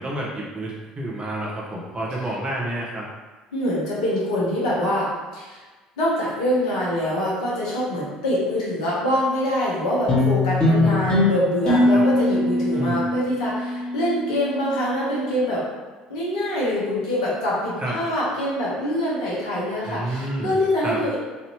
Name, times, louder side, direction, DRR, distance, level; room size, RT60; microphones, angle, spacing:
voice 1, 0.0-3.1 10.6-11.0 11.9-12.0 12.7-13.0 17.8-17.9 19.8-20.5 20.8-21.0, right 1 dB, 30° right, -4 dB, 0.9 m, -29 dB
voice 2, 3.5-5.6 6.0-15.6 16.1-21.2, left 1 dB, 70° left, -6 dB, 1.0 m, -24 dB
sound 1, 10.1-14.7, left 2 dB, 25° left, 1.4 m, -21 dB
3.3 x 2.7 x 3.0 m, 1.3 s
figure-of-eight pair, 60°, 4 cm